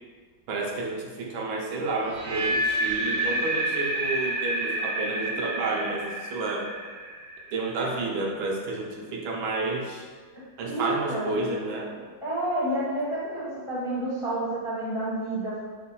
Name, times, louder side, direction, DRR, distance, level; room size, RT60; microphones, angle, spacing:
voice 1, 0.5-6.7 7.5-10.1 10.6-12.0, right 3 dB, 85° right, -1 dB, 1.5 m, -30 dB
sound 1, 2.0-8.1, right 1 dB, 65° right, 0.6 m, -29 dB
voice 2, 10.7-11.3 12.2-15.6, right 1 dB, 30° left, -8 dB, 0.5 m, -29 dB
5.0 x 2.2 x 4.1 m, 1.5 s
omnidirectional pair, 2.1 m